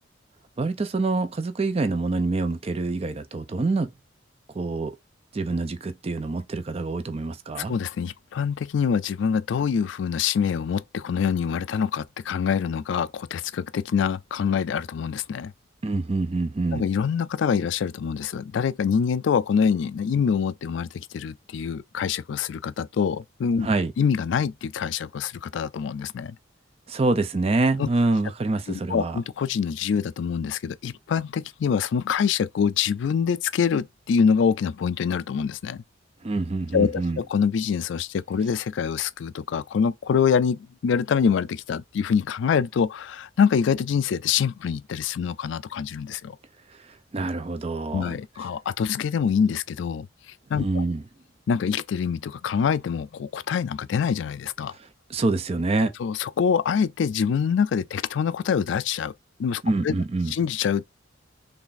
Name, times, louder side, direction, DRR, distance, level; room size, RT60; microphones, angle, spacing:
voice 1, 0.6-3.9 4.5-5.0 5.3-7.7 15.8-16.8 23.6-23.9 26.9-29.2 36.2-37.2 46.7-48.2 50.6-51.0 54.7-55.9 59.6-60.3, right 3 dB, 30° right, 0.4 m, -26 dB
voice 2, 7.6-15.5 16.7-23.7 24.0-26.4 27.8-27.9 28.7-35.8 36.7-46.4 47.9-50.8 51.5-54.7 56.0-59.1 59.4-59.9 60.3-60.8, left 6 dB, 65° left, 0.3 m, -25 dB
3.4 x 2.4 x 3.9 m
head